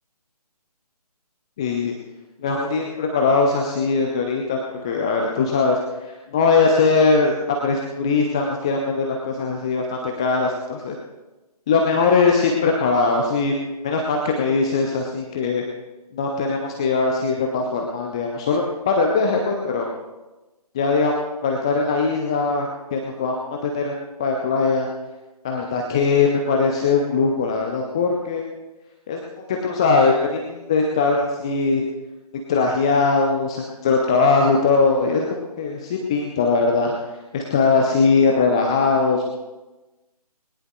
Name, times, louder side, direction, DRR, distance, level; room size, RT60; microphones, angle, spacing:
voice 1, 1.6-1.9 2.4-4.6 4.8-7.3 7.6-10.9 11.7-13.5 13.8-15.6 16.1-19.9 20.7-21.1 21.4-23.9 24.2-24.9 25.4-28.4 29.1-29.2 29.6-31.8 32.5-35.3 35.6-37.0 37.3-39.2, left 4 dB, 10° left, 1 dB, 0.5 m, -20 dB
20.5 x 18.5 x 2.3 m, 1.1 s
figure-of-eight pair, 145°, 20 cm